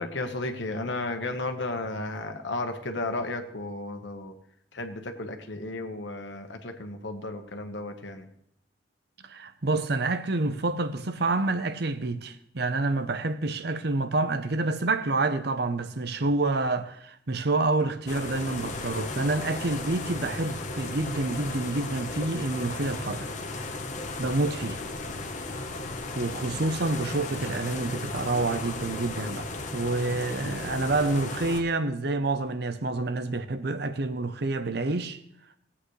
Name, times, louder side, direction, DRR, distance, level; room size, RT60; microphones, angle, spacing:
voice 1, 0.0-4.3 4.7-8.3, left 2 dB, 80° left, 1.3 m, -33 dB
voice 2, 9.2-23.3 24.2-24.8 26.2-35.2, right 2 dB, 60° right, 0.8 m, -28 dB
sound 1, 18.1-31.6, left 2 dB, 45° left, 1.1 m, -35 dB
18.5 x 8.6 x 3.3 m
head